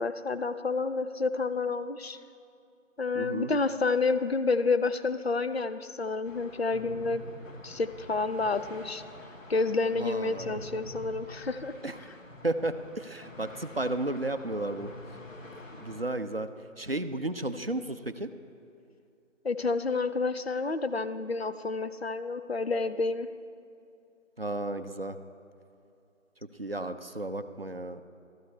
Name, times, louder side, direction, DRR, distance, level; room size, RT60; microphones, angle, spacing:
voice 1, 0.0-2.2 3.0-7.2 7.6-9.0 9.5-11.7 19.4-23.3, left 3 dB, 55° left, 11 dB, 0.5 m, -29 dB
voice 2, 3.1-3.5 10.0-10.6 11.8-12.0 12.4-14.9 15.8-16.5 16.8-18.3 24.4-25.2 26.6-28.0, right 2 dB, 50° right, 9 dB, 0.5 m, -33 dB
sound 1, 6.2-16.0, left 2 dB, 85° left, 1.4 m, -47 dB
13.5 x 13.0 x 3.2 m, 2.6 s
figure-of-eight pair, 180°, 39 cm